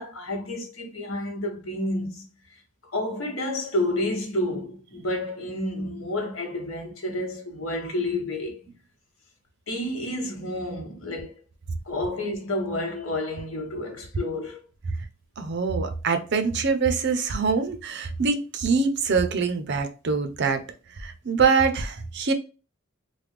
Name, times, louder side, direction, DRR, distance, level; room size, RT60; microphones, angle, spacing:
voice 1, 0.0-2.3 2.9-8.6 9.7-11.3 11.8-14.6, left 1 dB, 70° left, 1.1 m, -30 dB
voice 2, 15.4-20.6 21.0-22.3, right 5 dB, 55° right, 0.6 m, -24 dB
3.3 x 2.2 x 3.1 m
head